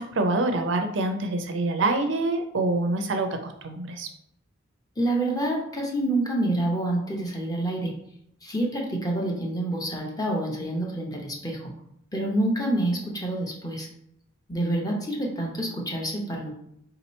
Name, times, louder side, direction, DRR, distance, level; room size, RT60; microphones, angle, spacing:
voice 1, 0.0-4.1, right 2 dB, 60° right, 6 dB, 0.5 m, -26 dB
voice 2, 5.0-7.9 8.4-11.7 12.1-13.9 14.5-16.6, right 1 dB, 20° left, -1 dB, 0.8 m, -27 dB
3.7 x 2.9 x 4.1 m, 0.75 s
head